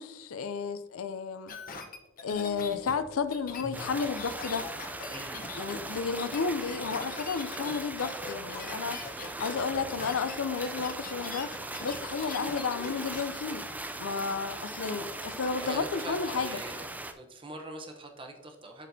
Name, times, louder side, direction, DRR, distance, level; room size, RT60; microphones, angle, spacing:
voice 1, 0.0-1.5 2.2-4.7 5.5-11.5 11.8-13.6 14.0-16.6, left 5 dB, 75° left, 0.5 m, -32 dB
sound 1, 1.5-13.3 13.6-13.7, left 4 dB, 40° left, 0.9 m, -42 dB
sound 2, 2.3-5.5, right 1 dB, 25° left, 1.2 m, -48 dB
sound 3, 3.7-17.1, right 2 dB, 5° right, 0.3 m, -39 dB
voice 2, 5.1-5.4 15.6-16.8 17.2-18.9, right 2 dB, 25° right, 0.7 m, -43 dB
12.5 x 4.2 x 2.7 m
head